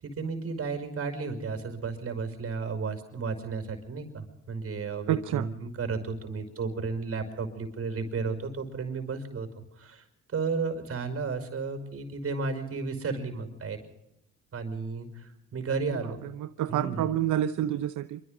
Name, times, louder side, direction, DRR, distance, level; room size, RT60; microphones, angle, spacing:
voice 1, 0.0-9.5 9.8-10.0 10.3-13.8 14.5-16.2 16.7-17.1, right 4 dB, 50° right, 7 dB, 5.6 m, -33 dB
voice 2, 5.1-5.5 16.0-18.2, right 12 dB, 80° right, 10 dB, 0.8 m, -29 dB
26.5 x 25.5 x 3.9 m, 0.85 s
cardioid pair, 90°, 30 cm